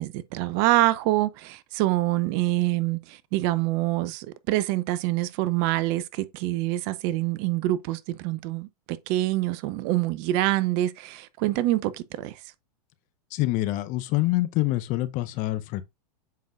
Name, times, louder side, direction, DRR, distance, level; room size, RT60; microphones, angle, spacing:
voice 1, 0.0-12.3, right 16 dB, 45° right, 0.7 m, -26 dB
voice 2, 13.3-15.8, left 17 dB, 40° left, 0.7 m, -26 dB
7.6 x 5.4 x 2.4 m
hypercardioid pair, 110°, 21 cm